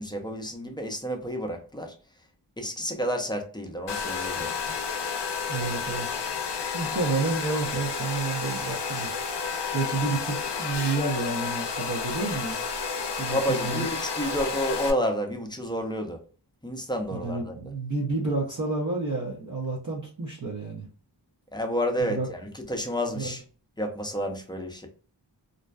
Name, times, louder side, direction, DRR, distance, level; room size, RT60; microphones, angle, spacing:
voice 1, 0.0-1.9 2.6-4.5 13.3-16.2 16.6-17.6 21.5-23.4 23.8-24.9, equal, 10° left, 0.5 m, -30 dB
Domestic sounds home sounds, 3.9-14.9, left 5 dB, 70° left, 0.5 m, -31 dB
voice 2, 5.5-6.1 6.7-9.1 9.7-12.6 13.2-13.8 17.2-20.9 22.1-22.3 23.1-23.3, right 3 dB, 45° right, 0.6 m, -30 dB
2.6 x 2.1 x 2.2 m
wide cardioid pair, 50°, 44 cm